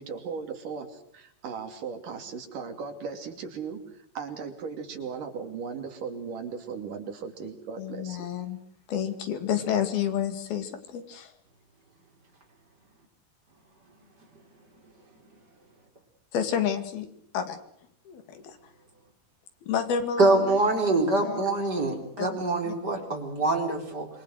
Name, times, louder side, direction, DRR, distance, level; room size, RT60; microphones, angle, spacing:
voice 1, 0.0-3.8 4.2-8.3, right 5 dB, 65° right, 6 dB, 4.1 m, -37 dB
voice 2, 7.8-8.6 8.9-11.3 16.3-17.1 17.3-17.6 18.1-18.6 19.6-20.6 20.9-21.4 22.2-22.4 22.6-22.7, left 8 dB, 85° left, 9 dB, 4.2 m, -30 dB
voice 3, 20.2-24.1, right 2 dB, 25° right, 3 dB, 4.4 m, -24 dB
26.5 x 23.5 x 6.5 m, 0.69 s
omnidirectional pair, 4.2 m